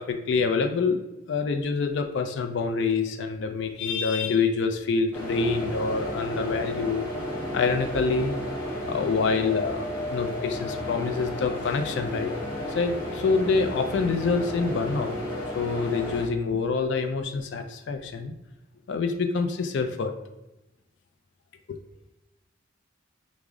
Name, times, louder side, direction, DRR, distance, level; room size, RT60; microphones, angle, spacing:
voice 1, 0.0-7.1 7.5-8.4 8.9-12.3 12.7-15.2 15.4-18.3 18.9-20.1 21.7-21.8, left 4 dB, 65° left, 6 dB, 0.3 m, -26 dB
sound 1, 5.1-16.2, left 1 dB, 15° left, 1.2 m, -33 dB
4.8 x 2.0 x 3.6 m, 0.95 s
head